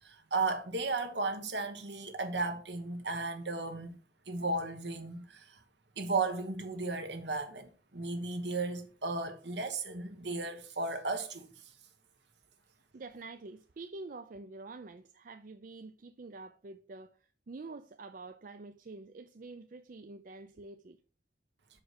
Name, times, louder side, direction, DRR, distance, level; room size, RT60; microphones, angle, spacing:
voice 1, 0.0-4.0 4.3-5.6 6.0-11.4, right 3 dB, 75° right, 1.3 m, -35 dB
voice 2, 12.9-21.0, right 3 dB, 50° right, 0.4 m, -47 dB
6.4 x 4.9 x 6.5 m
head